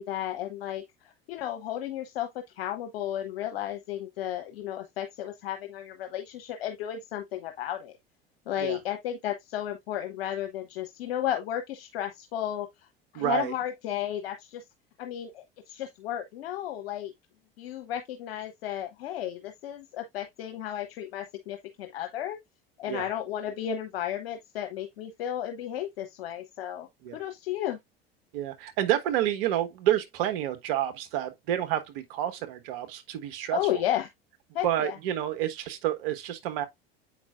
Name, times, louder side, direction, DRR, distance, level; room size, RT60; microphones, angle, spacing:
voice 1, 0.0-7.9 8.5-12.7 13.1-14.6 15.0-17.1 17.6-22.4 22.8-26.9 27.1-27.8 33.5-34.1 34.5-35.0, left 11 dB, 70° left, 1.0 m, -33 dB
voice 2, 13.1-13.5 22.9-23.1 27.0-27.2 28.3-33.6 34.6-36.6, right 12 dB, 65° right, 1.3 m, -29 dB
8.0 x 5.1 x 2.4 m
hypercardioid pair, 75°, 30 cm